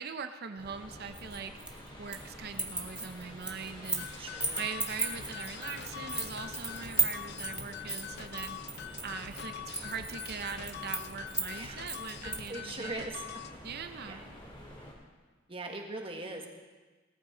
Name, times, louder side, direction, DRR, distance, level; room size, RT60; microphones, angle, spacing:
voice 1, 0.0-4.2 4.6-8.8 9.0-13.0 13.6-14.2, right 6 dB, 55° right, 8 dB, 0.7 m, -41 dB
sound 1, 0.6-14.9, equal, 25° left, 2.9 m, -48 dB
sound 2, 1.1-2.3 2.5-4.1 4.4-12.5, right 2 dB, 5° right, 1.2 m, -35 dB
sound 3, 4.0-13.6, left 10 dB, 55° left, 0.6 m, -45 dB
voice 2, 4.2-4.6 11.5-11.8 12.5-13.3 14.1-14.2 15.5-16.5, right 2 dB, 30° right, 2 dB, 1.6 m, -40 dB
18.0 x 13.5 x 3.8 m, 1.3 s
head